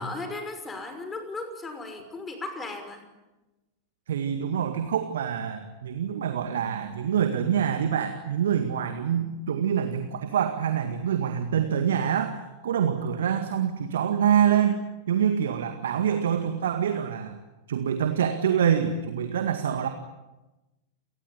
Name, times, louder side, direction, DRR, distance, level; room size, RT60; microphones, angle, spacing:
voice 1, 0.0-3.0, left 3 dB, 15° left, 8 dB, 5.8 m, -36 dB
voice 2, 4.1-17.4 17.7-19.9, right 8 dB, 60° right, 8 dB, 2.0 m, -26 dB
28.5 x 20.0 x 10.0 m, 1.1 s
figure-of-eight pair, 90°, 0 cm